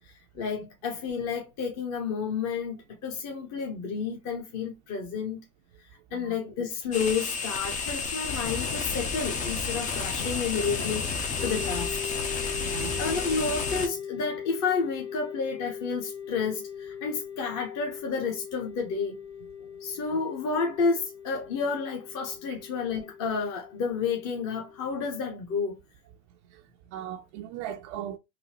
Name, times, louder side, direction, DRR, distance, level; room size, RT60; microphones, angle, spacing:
voice 1, 0.3-5.4 6.1-12.2 13.0-19.2 19.8-25.8, left 5 dB, 35° left, 1.0 m, -31 dB
sound 1, 6.9-13.9, left 5 dB, 20° left, 0.4 m, -31 dB
sound 2, 11.4-25.3, left 8 dB, 85° left, 1.0 m, -40 dB
voice 2, 12.5-13.0 20.1-20.2 26.5-26.6 26.9-28.2, right 10 dB, 55° right, 0.5 m, -38 dB
3.9 x 2.1 x 2.8 m
hypercardioid pair, 110°, 45 cm